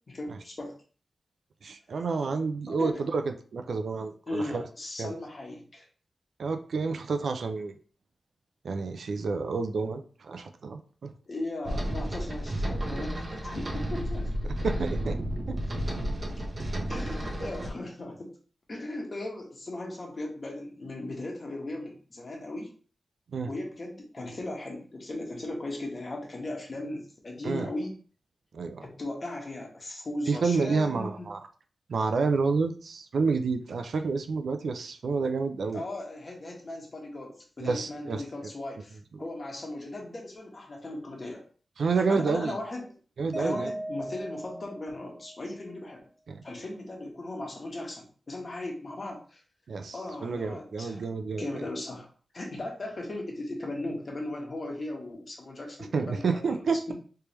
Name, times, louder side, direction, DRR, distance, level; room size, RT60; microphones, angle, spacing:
voice 1, 0.1-0.7 2.7-3.0 4.3-5.9 11.3-14.3 15.8-15.9 16.9-18.3 18.7-22.7 23.5-27.9 28.8-31.3 35.7-41.4 42.0-42.9 43.4-46.0 46.4-49.4 49.9-51.1 51.4-52.1 52.3-56.9, left 2 dB, 45° left, 0 dB, 1.3 m, -37 dB
voice 2, 1.6-4.6 5.0-5.1 6.4-7.7 8.6-11.1 14.6-15.2 15.5-15.6 23.3-23.5 27.4-27.7 28.5-28.9 30.3-31.4 31.9-35.8 37.6-38.2 39.1-39.2 41.8-42.5 43.2-43.7 46.3-46.4 49.7-49.9 50.2-51.6 55.9-56.9, right 4 dB, 80° right, 7 dB, 0.4 m, -29 dB
sound 1, 11.6-17.7, equal, 50° right, 0.9 m, -32 dB
Mallet percussion, 43.3-45.6, right 1 dB, 5° left, 0.3 m, -37 dB
3.3 x 3.3 x 3.0 m, 0.41 s
wide cardioid pair, 80°, 0 cm